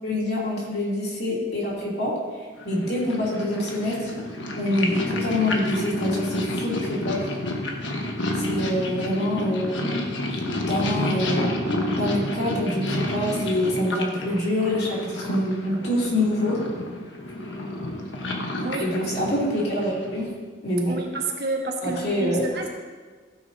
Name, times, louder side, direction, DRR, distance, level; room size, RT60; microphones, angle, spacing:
voice 1, 0.0-4.1 4.6-7.2 8.3-9.9 10.5-11.6 12.0-16.6 18.8-20.3 20.6-21.0 21.8-22.5, left 1 dB, 60° left, -5 dB, 3.3 m, -26 dB
Purr, 2.6-20.3, left 1 dB, 85° left, 1.3 m, -30 dB
voice 2, 18.6-18.9 20.9-22.7, right 3 dB, 60° right, 1 dB, 1.4 m, -29 dB
15.5 x 9.4 x 2.9 m, 1.5 s
head